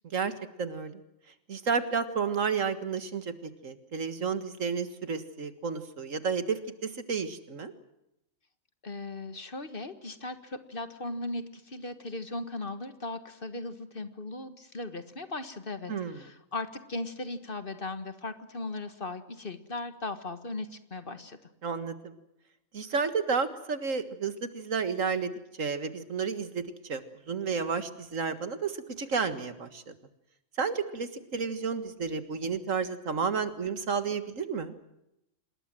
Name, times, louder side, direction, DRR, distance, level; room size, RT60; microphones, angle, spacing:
voice 1, 0.6-1.0 1.5-7.7 15.9-16.2 21.6-22.1 22.7-25.3 25.6-29.9 30.6-34.8, right 5 dB, 75° right, 10 dB, 2.1 m, -31 dB
voice 2, 8.8-21.4, left 2 dB, 45° left, 10 dB, 1.7 m, -38 dB
27.0 x 20.5 x 7.7 m, 0.84 s
omnidirectional pair, 1.4 m